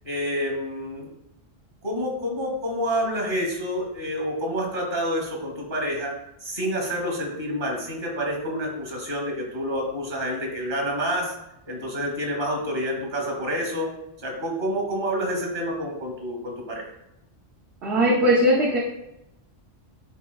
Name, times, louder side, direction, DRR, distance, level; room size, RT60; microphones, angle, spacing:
voice 1, 0.0-1.1 1.8-6.1 6.4-11.3 11.7-13.9 14.2-16.8, equal, 45° right, 0 dB, 2.2 m, -28 dB
voice 2, 17.8-18.8, equal, 60° right, -4 dB, 1.2 m, -19 dB
10.5 x 4.3 x 2.3 m, 0.86 s
omnidirectional pair, 1.3 m